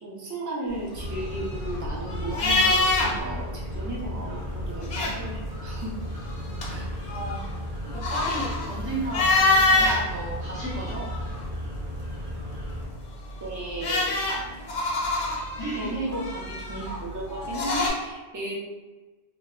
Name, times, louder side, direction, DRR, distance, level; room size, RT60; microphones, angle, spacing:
voice 1, 0.0-5.9 6.6-6.9 9.7-9.9 13.4-14.5 15.8-18.6, right 1 dB, 30° right, -4 dB, 0.3 m, -35 dB
sound 1, 0.9-3.4 3.7-3.8 4.6-5.5 6.1-10.0 10.6-11.6 13.1-17.9, left 2 dB, 55° left, 0.5 m, -26 dB
sound 2, 0.9-12.9, equal, 55° right, 0.8 m, -35 dB
voice 2, 7.1-7.4 7.9-11.1 15.6-15.9, right 1 dB, 15° left, -11 dB, 0.6 m, -34 dB
2.1 x 2.1 x 3.5 m, 1.2 s
omnidirectional pair, 1.1 m